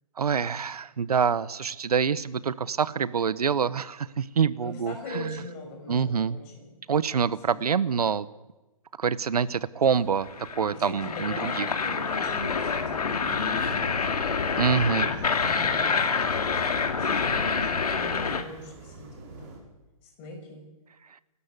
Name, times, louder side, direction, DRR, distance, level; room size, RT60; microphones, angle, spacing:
voice 1, 0.2-5.3 5.9-6.4 6.9-8.3 9.0-10.3 10.6-11.7 14.6-15.1, right 6 dB, 90° right, 18 dB, 1.0 m, -26 dB
voice 2, 4.6-6.7 7.2-7.6 10.7-14.1 14.7-19.6 20.0-20.6, left 3 dB, 25° left, 2 dB, 5.8 m, -41 dB
sound 1, 9.9-19.6, right 4 dB, 30° right, 5.2 m, -48 dB
sound 2, 10.3-18.4, left 5 dB, 85° left, 2.5 m, -27 dB
27.5 x 13.0 x 8.2 m, 1.1 s
hypercardioid pair, 165°, 19 cm